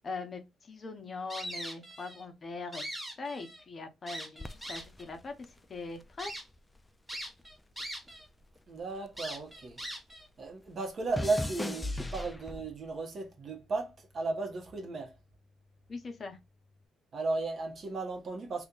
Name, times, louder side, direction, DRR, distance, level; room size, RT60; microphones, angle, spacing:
voice 1, 0.0-2.8 3.2-5.3 5.7-6.3 15.9-16.4, left 3 dB, 40° left, 0.8 m, -41 dB
sound 1, 1.3-2.2 2.6-3.6 4.1-5.1 5.6-5.7 6.2-6.4 7.1-8.3 8.6-8.7 9.2-10.3, equal, 15° right, 1.1 m, -41 dB
sound 2, 4.4-6.9 7.2-9.8 10.1-12.9 13.6-14.0, left 1 dB, 15° left, 0.3 m, -40 dB
voice 2, 8.7-9.8 10.4-15.1 17.1-18.7, right 3 dB, 50° right, 1.0 m, -35 dB
2.9 x 2.4 x 3.7 m
cardioid pair, 90°, 0 cm